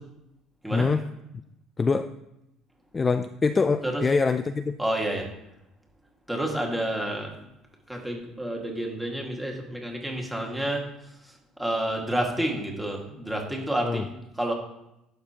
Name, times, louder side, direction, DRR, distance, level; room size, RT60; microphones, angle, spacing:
voice 1, 0.7-1.1 1.8-2.1 2.9-4.8 13.8-14.0, left 4 dB, 20° left, 10 dB, 0.3 m, -24 dB
voice 2, 4.8-5.3 6.3-7.3 7.9-10.8 11.6-14.5, right 1 dB, 5° right, 0 dB, 1.8 m, -29 dB
11.5 x 6.7 x 2.9 m, 0.87 s
cardioid pair, 125°, 0 cm